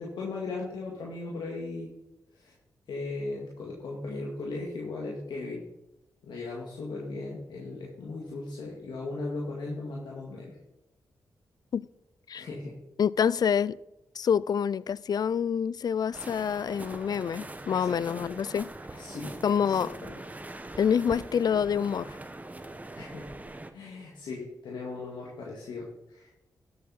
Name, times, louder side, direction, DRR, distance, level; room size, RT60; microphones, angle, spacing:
voice 1, 0.0-1.9 2.3-2.5 2.9-5.6 6.2-10.6 12.3-12.8 17.7-18.3 19.0-20.2 23.0-23.3 23.7-26.3, left 3 dB, 80° left, 1.9 m, -37 dB
voice 2, 13.0-13.8 14.2-18.7 19.4-19.9 20.8-22.1, left 7 dB, 60° left, 0.3 m, -27 dB
sound 1, 16.1-23.7, right 2 dB, 20° right, 1.1 m, -42 dB
13.0 x 7.9 x 4.1 m
supercardioid pair, 40°, 8 cm